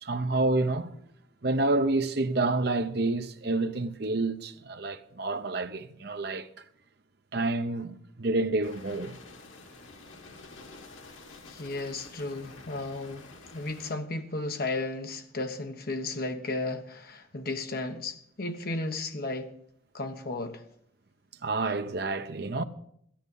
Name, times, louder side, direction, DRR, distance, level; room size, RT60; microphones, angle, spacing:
voice 1, 0.0-0.9 1.4-6.5 7.3-9.1 21.4-22.6, right 2 dB, 55° right, 0.7 m, -28 dB
sound 1, 8.6-13.9, left 3 dB, 90° left, 1.6 m, -49 dB
voice 2, 11.5-13.3 13.5-19.5 19.9-20.6, left 2 dB, 50° left, 1.0 m, -34 dB
13.5 x 10.5 x 5.4 m
head